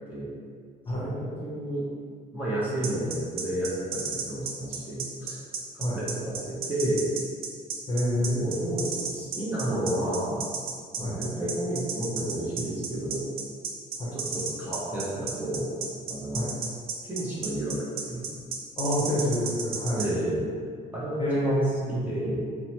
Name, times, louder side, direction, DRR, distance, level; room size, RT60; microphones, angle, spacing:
voice 1, 0.9-1.9 2.3-5.4 5.7-7.0 8.1-10.4 11.0-13.2 14.1-15.7 16.0-16.5 17.0-17.8 18.1-18.3 19.9-20.4 20.9-22.4, right 1 dB, 10° right, -10 dB, 0.7 m, -31 dB
sound 1, 2.8-20.1, right 5 dB, 65° right, 0.5 m, -33 dB
voice 2, 7.9-8.5 11.0-11.2 14.0-14.1 16.3-16.5 18.8-20.1 21.2-21.8, equal, 25° left, -7 dB, 0.8 m, -27 dB
2.8 x 2.1 x 2.8 m, 2.1 s
cardioid pair, 110°, 17 cm